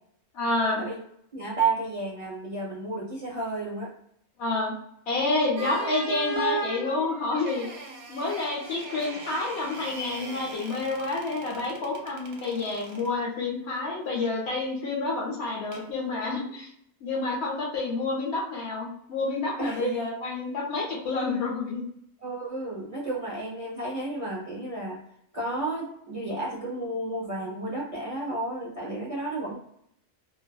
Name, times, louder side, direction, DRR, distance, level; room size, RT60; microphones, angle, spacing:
voice 1, 0.3-0.8 4.4-4.7 5.1-7.7 8.1-16.7 17.0-21.8, left 3 dB, 60° left, -2 dB, 0.9 m, -29 dB
voice 2, 1.3-3.9 19.6-20.1 22.2-25.0 25.3-29.6, right 2 dB, 40° right, -6 dB, 0.5 m, -32 dB
sound 1, 5.6-13.1 15.7-15.9, right 4 dB, 70° right, 0.8 m, -37 dB
2.5 x 2.4 x 2.2 m, 0.72 s
omnidirectional pair, 1.4 m